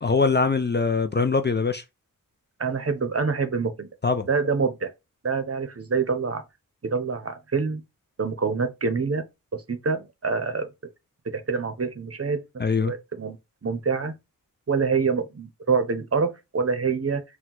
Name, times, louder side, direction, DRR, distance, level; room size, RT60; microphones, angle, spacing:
voice 1, 0.0-1.8 4.0-4.3 12.6-12.9, left 4 dB, 30° left, 0.4 m, -22 dB
voice 2, 2.6-3.9 4.3-4.9 5.2-6.4 6.8-7.8 8.2-9.2 9.5-10.7 11.3-12.4 12.8-13.4 13.6-14.1 14.7-17.2, right 5 dB, 40° right, 0.7 m, -26 dB
4.4 x 2.2 x 3.8 m
wide cardioid pair, 60°, 35 cm